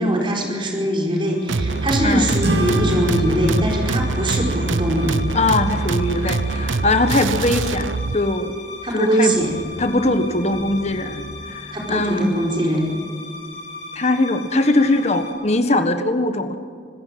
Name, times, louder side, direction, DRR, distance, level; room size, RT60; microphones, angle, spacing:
voice 1, 0.0-5.2 8.8-9.5 11.7-12.9, right 1 dB, 25° right, 0 dB, 4.8 m, -21 dB
sound 1, 1.2-15.3, left 2 dB, 65° left, 7.5 m, -37 dB
sound 2, 1.5-8.2, right 3 dB, 85° right, 0.7 m, -24 dB
sound 3, 2.4-7.3, equal, 60° right, 3.3 m, -28 dB
voice 2, 5.3-7.9 8.1-8.5 8.9-9.3 9.8-12.4 13.9-16.6, left 2 dB, 35° left, 8 dB, 1.5 m, -21 dB
25.5 x 15.0 x 7.7 m, 2.3 s
head